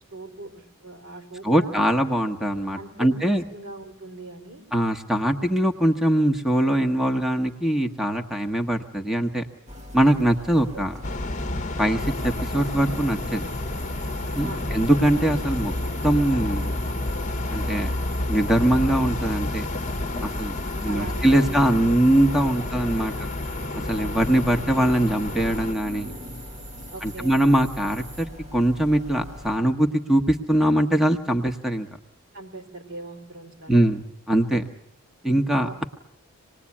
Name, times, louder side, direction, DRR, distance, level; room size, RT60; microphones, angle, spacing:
voice 1, 0.1-1.8 2.7-4.6 10.7-10.8 14.4-14.8 20.8-21.6 22.4-22.5 23.1-23.3 26.9-27.4 32.3-33.9 35.6-35.9, right 2 dB, 70° right, 4 dB, 4.0 m, -40 dB
voice 2, 1.4-3.4 4.7-9.4 9.9-10.9 11.8-13.5 14.3-15.7 16.0-16.6 17.5-17.9 18.3-19.7 20.2-20.5 20.8-23.1 23.9-26.1 27.0-31.9 33.7-34.0 34.3-34.6 35.2-35.8, right 1 dB, ahead, 5 dB, 1.2 m, -22 dB
sound 1, 9.7-29.6, left 1 dB, 30° right, 1.7 m, -41 dB
sound 2, 11.0-25.7, left 2 dB, 35° left, 1.0 m, -30 dB
sound 3, 12.0-28.3, right 2 dB, 85° right, 7.7 m, -46 dB
26.5 x 20.0 x 8.5 m, 0.75 s
head